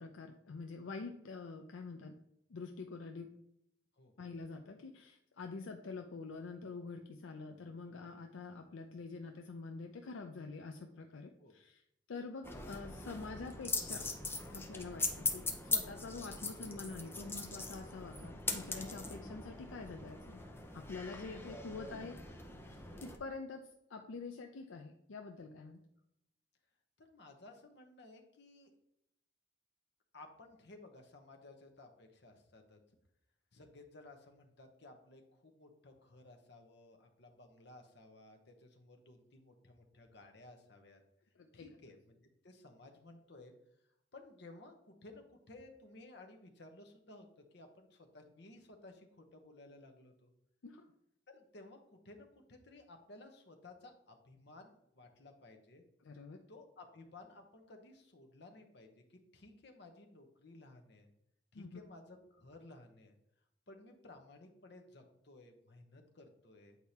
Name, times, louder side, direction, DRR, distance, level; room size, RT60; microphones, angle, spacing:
voice 1, 0.0-2.2 2.5-3.3 4.2-11.8 12.1-14.1 14.5-20.4 20.7-22.2 23.0-25.8 41.4-41.7 50.6-50.8 56.0-56.4 61.5-61.8, left 4 dB, 80° left, 4 dB, 0.5 m, -46 dB
sound 1, 12.4-23.2, left 3 dB, 10° left, 0.6 m, -41 dB
voice 2, 27.0-28.7 30.1-32.8 33.5-41.0 41.5-43.5 44.1-47.3 47.5-50.3 51.3-55.8 56.5-61.1 61.5-63.1 63.7-66.8, left 2 dB, 60° left, 4 dB, 1.0 m, -57 dB
8.3 x 4.6 x 2.8 m, 0.78 s
head